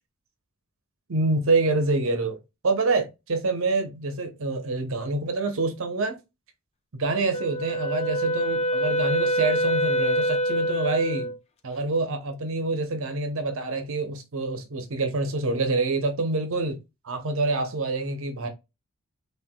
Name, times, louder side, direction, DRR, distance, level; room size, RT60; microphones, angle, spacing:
voice 1, 1.1-2.4 2.6-6.2 7.0-11.3 11.6-16.8 17.0-18.5, right 3 dB, 65° right, 0.8 m, -26 dB
Wind instrument woodwind instrument, 7.3-11.4, equal, 30° left, 0.4 m, -25 dB
4.5 x 3.2 x 2.2 m
head